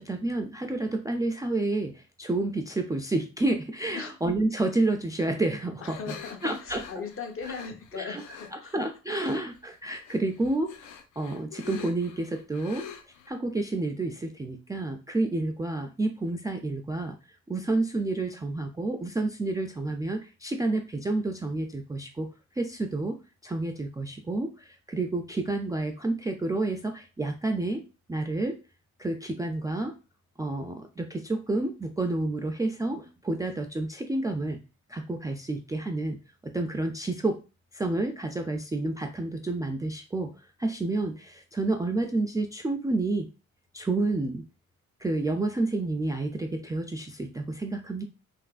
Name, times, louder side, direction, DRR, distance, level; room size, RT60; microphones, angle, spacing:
voice 1, 0.0-6.2 6.4-6.8 7.9-8.2 8.5-10.7 11.2-12.9 13.3-17.2 17.5-22.3 22.6-23.2 23.4-27.8 28.1-28.6 29.0-29.9 30.4-34.6 34.9-37.4 37.7-43.3 43.7-44.4 45.0-48.0, right 2 dB, 10° right, 4 dB, 0.3 m, -29 dB
sound 1, 5.8-8.5 9.1-9.6 9.9-13.3, left 8 dB, 85° left, 0.6 m, -45 dB
voice 2, 5.8-8.8, left 5 dB, 45° left, 3 dB, 0.8 m, -39 dB
3.3 x 3.0 x 2.4 m, 0.32 s
cardioid pair, 90°, 30 cm